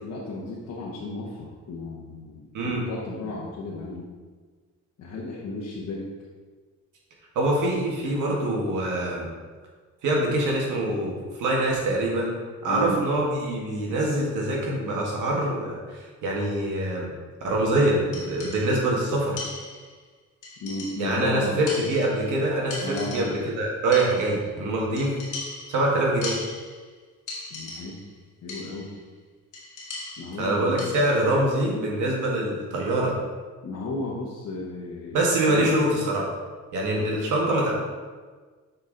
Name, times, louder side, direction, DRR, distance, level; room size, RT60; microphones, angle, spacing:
voice 1, 0.0-4.1 5.0-6.1 12.7-13.0 20.6-21.6 22.8-23.2 27.5-28.0 28.4-28.9 30.2-31.0 33.6-35.2 35.5-35.7 36.9-37.1, left 2 dB, 65° left, -4 dB, 1.3 m, -34 dB
voice 2, 7.4-9.3 10.0-12.3 12.6-17.1 17.4-19.4 21.0-25.2 25.7-26.4 30.4-33.1 35.1-36.3 36.7-37.7, right 1 dB, 80° right, -2 dB, 1.8 m, -24 dB
sound 1, 18.1-18.9 19.4-20.0 20.4-21.3 21.7-22.4 22.7-23.6 23.9-24.5 25.0-26.9 27.3-28.1 28.5-29.0 29.5-31.3, left 3 dB, 90° left, 1.9 m, -39 dB
6.7 x 4.6 x 4.0 m, 1.4 s
cardioid pair, 90°, 30 cm